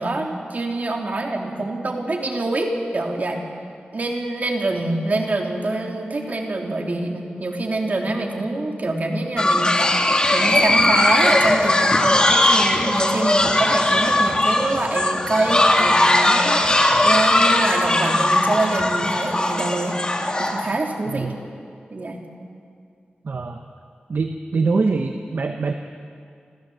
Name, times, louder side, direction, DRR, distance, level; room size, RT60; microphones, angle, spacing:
voice 1, 0.0-3.4 3.9-10.1 10.3-20.0 20.4-21.3 21.9-22.2, right 2 dB, 50° right, 1 dB, 3.1 m, -25 dB
sound 1, 9.4-20.7, left 1 dB, 25° left, 2.2 m, -19 dB
voice 2, 23.2-23.6 24.1-25.7, right 4 dB, 65° right, 5 dB, 1.0 m, -23 dB
25.5 x 15.5 x 7.8 m, 2.3 s
wide cardioid pair, 65°, 3 cm